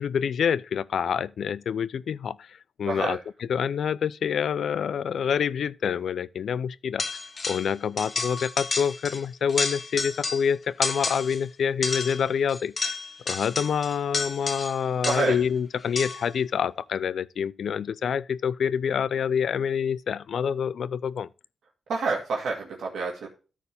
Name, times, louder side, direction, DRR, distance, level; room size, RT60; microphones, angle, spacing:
voice 1, 0.0-2.4 2.8-3.2 3.5-7.0 7.5-13.0 13.3-21.3, left 7 dB, 70° left, 0.4 m, -27 dB
voice 2, 2.8-3.2 15.0-15.4 21.9-23.3, right 4 dB, 80° right, 2.1 m, -28 dB
sound 1, 7.0-7.7 8.0-9.2 9.5-10.5 10.8-11.4 11.8-15.4 16.0-16.3, left 4 dB, 35° left, 1.0 m, -31 dB
13.5 x 4.6 x 3.4 m
wide cardioid pair, 120°, 0 cm